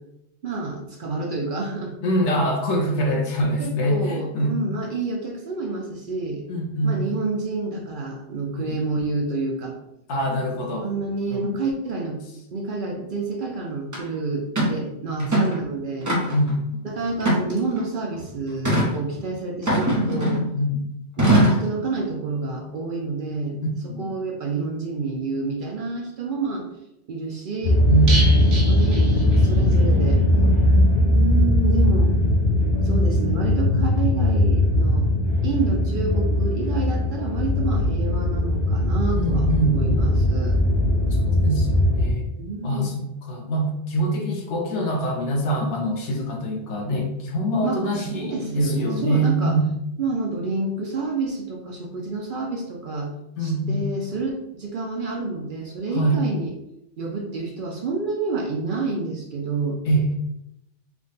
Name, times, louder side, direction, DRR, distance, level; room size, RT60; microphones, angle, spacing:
voice 1, 0.4-1.9 3.6-6.4 6.8-9.7 10.5-12.2 12.5-16.1 16.8-20.4 21.2-26.7 27.1-27.8 28.4-29.0 29.4-30.2 31.1-32.1 32.8-35.1 35.4-40.6 42.4-42.9 47.6-49.6 50.0-53.1 53.4-56.5 57.0-59.8, right 3 dB, 60° right, 0 dB, 0.6 m, -28 dB
voice 2, 2.0-4.6 6.5-7.0 8.6-8.7 10.1-10.9 11.3-11.6 15.2-15.3 16.3-16.7 20.5-20.9 23.9-24.1 27.9-28.5 39.1-40.3 41.1-41.7 41.9-42.2 42.6-49.6 53.4-53.8 55.9-56.2 59.9-60.1, right 1 dB, 80° left, 1 dB, 1.1 m, -24 dB
sound 1, 13.9-14.0 14.6-14.8 15.2-15.6 16.1-16.5 17.2-17.9 18.6-18.9 19.7-20.5 21.2-21.7, right 1 dB, 20° right, 0.7 m, -21 dB
sound 2, 27.6-42.1, left 1 dB, 45° left, 0.7 m, -19 dB
sound 3, 28.1-29.9 30.1-30.2 30.6-30.7, right 1 dB, 85° right, 1.1 m, -30 dB
3.4 x 2.1 x 3.8 m, 0.84 s
omnidirectional pair, 1.2 m